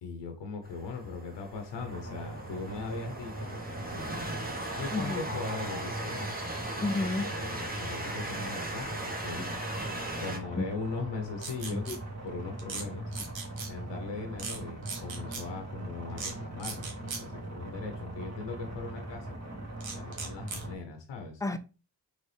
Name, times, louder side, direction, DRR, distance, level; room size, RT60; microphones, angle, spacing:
voice 1, 0.0-4.2 4.8-6.4 7.2-11.9 12.2-13.1 13.7-21.4, left 4 dB, 70° left, 1.0 m, -40 dB
Train, 0.6-10.4, right 1 dB, 20° right, 1.4 m, -38 dB
sound 1, 1.7-20.7, right 2 dB, 35° right, 2.0 m, -41 dB
voice 2, 4.9-5.3 6.8-7.3 9.4-9.5 10.6-10.7 11.7-12.0 21.4-21.6, left 2 dB, 5° left, 0.6 m, -31 dB
sound 2, 11.4-12.0 12.6-12.8 13.1-13.7 14.4-14.6 14.9-15.4 16.2-16.3 16.6-17.2 19.8-20.6, right 5 dB, 80° right, 1.2 m, -38 dB
4.0 x 3.4 x 3.3 m
supercardioid pair, 50°, 45 cm